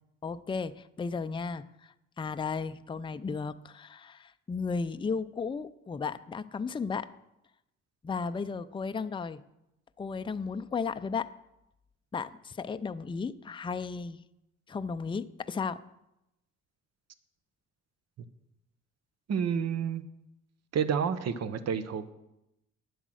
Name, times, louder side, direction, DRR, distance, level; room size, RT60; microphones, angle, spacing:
voice 1, 0.2-7.1 8.0-9.4 10.0-11.3 12.1-14.2 14.7-15.8, left 5 dB, 15° left, 11 dB, 0.4 m, -34 dB
voice 2, 19.3-20.0 20.7-22.1, right 7 dB, 60° right, 12 dB, 1.0 m, -29 dB
10.5 x 8.0 x 6.3 m, 0.87 s
cardioid pair, 90°, 30 cm